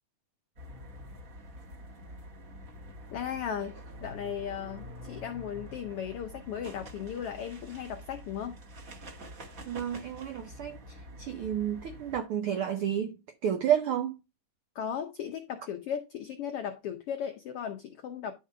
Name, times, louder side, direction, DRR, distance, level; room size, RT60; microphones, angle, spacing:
sound 1, 0.6-12.2, equal, 45° right, 1.2 m, -47 dB
voice 1, 3.1-3.8 4.0-8.6 14.7-18.3, left 8 dB, 85° left, 1.2 m, -36 dB
voice 2, 9.7-14.2, right 9 dB, 80° right, 1.2 m, -31 dB
10.5 x 3.7 x 5.5 m
omnidirectional pair, 3.7 m